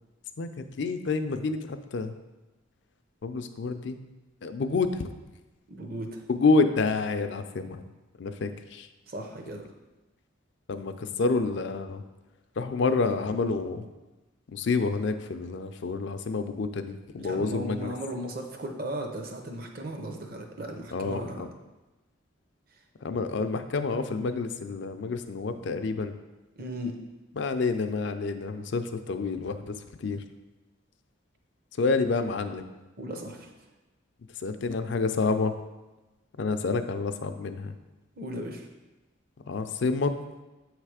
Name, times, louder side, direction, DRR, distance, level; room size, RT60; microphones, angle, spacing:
voice 1, 0.8-2.2 3.2-4.0 4.4-5.1 6.3-7.8 8.2-8.9 10.7-12.0 12.6-13.9 14.5-17.9 20.9-21.5 23.0-26.2 27.4-29.7 30.0-30.2 31.8-32.7 34.4-35.5 36.4-37.7 39.5-40.1, left 4 dB, 60° left, 9 dB, 0.4 m, -28 dB
voice 2, 5.7-6.2 9.1-9.7 17.2-21.4 22.7-22.8 26.6-27.0 33.0-33.5 38.2-38.7, right 1 dB, 45° right, 3 dB, 0.7 m, -36 dB
7.8 x 3.3 x 4.8 m, 1.1 s
head